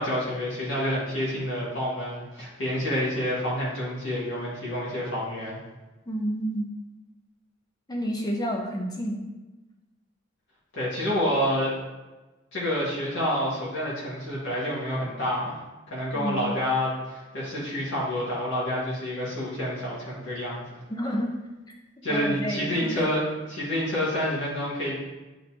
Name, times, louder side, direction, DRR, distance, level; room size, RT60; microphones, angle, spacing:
voice 1, 0.0-5.6 10.7-11.7 12.5-15.6 15.9-20.6 22.0-23.2 23.5-24.9, equal, 65° left, -8 dB, 2.0 m, -28 dB
voice 2, 6.1-6.7 7.9-9.2 16.1-16.5 20.9-21.3 22.1-23.1, equal, 20° left, 0 dB, 0.8 m, -29 dB
8.9 x 4.1 x 2.9 m, 1.1 s
head